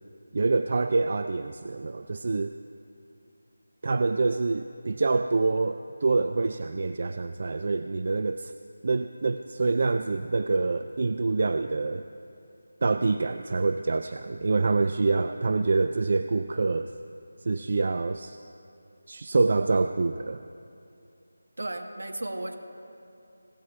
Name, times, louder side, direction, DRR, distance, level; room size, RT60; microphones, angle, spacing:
voice 1, 0.3-2.6 3.8-8.5 8.8-12.1 12.8-16.9 17.4-18.4 19.1-20.4, right 3 dB, 50° right, 9 dB, 0.4 m, -26 dB
voice 2, 21.6-22.6, right 1 dB, 75° right, 5 dB, 1.5 m, -34 dB
21.5 x 17.0 x 3.3 m, 2.7 s
figure-of-eight pair, 165°, 0 cm